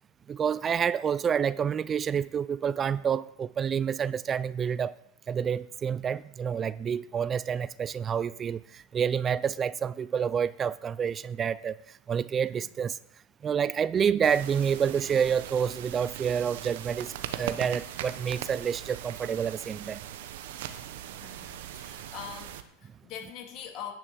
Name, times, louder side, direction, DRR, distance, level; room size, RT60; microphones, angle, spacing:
voice 1, 0.3-4.9 5.3-13.0 13.4-20.0, right 7 dB, 30° right, 0.3 m, -28 dB
sound 1, 14.2-22.6, right 11 dB, 75° right, 0.9 m, -40 dB
voice 2, 21.2-23.9, left 8 dB, 50° left, 2.4 m, -43 dB
10.5 x 5.7 x 6.9 m
hypercardioid pair, 105°, 0 cm